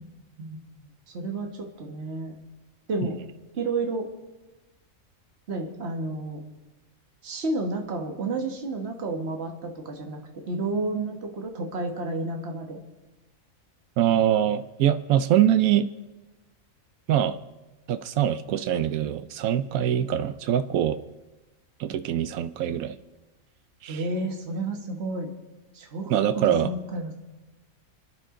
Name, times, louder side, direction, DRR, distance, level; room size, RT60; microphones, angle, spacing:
voice 1, 0.4-2.3 2.9-3.2 3.5-4.1 5.5-6.4 7.2-12.8 23.9-25.3 25.7-27.1, right 2 dB, 50° right, 2 dB, 1.7 m, -31 dB
voice 2, 14.0-15.9 17.1-17.4 17.9-21.0 21.8-23.0 23.8-24.0 26.1-26.7, right 10 dB, 90° right, 12 dB, 1.1 m, -23 dB
29.5 x 10.0 x 3.8 m, 1.1 s
omnidirectional pair, 1.4 m